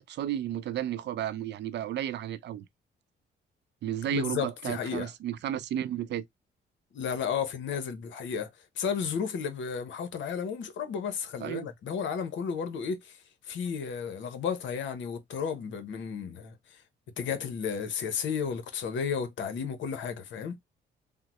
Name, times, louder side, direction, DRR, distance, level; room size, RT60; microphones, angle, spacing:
voice 1, 0.0-2.6 3.8-6.2 11.4-11.7, right 11 dB, 60° right, 0.4 m, -33 dB
voice 2, 4.1-5.1 6.9-8.5 8.8-13.2 13.5-16.5 17.2-20.6, left 7 dB, 70° left, 0.8 m, -33 dB
3.6 x 2.1 x 2.9 m
cardioid pair, 90°, 20 cm